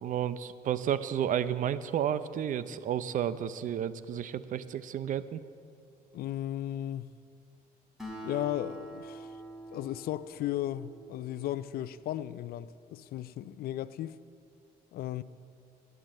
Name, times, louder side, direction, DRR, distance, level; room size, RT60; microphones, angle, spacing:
voice 1, 0.0-5.4, right 9 dB, 50° right, 0.6 m, -31 dB
voice 2, 6.1-7.1 8.2-9.4 9.7-14.2 14.9-15.2, left 12 dB, 65° left, 0.5 m, -35 dB
Acoustic guitar, 8.0-11.7, right 1 dB, ahead, 3.5 m, -45 dB
12.0 x 9.6 x 7.7 m
cardioid pair, 110°, 17 cm